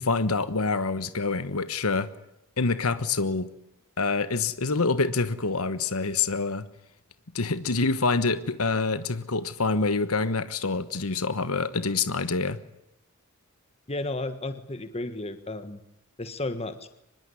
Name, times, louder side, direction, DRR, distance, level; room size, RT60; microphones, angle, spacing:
voice 1, 0.0-2.1 2.6-3.5 4.0-6.7 7.3-12.6, left 3 dB, 90° left, 13 dB, 1.3 m, -26 dB
voice 2, 13.9-15.8 16.2-16.9, left 2 dB, 30° left, 10 dB, 1.5 m, -33 dB
24.5 x 21.5 x 9.8 m, 0.82 s
head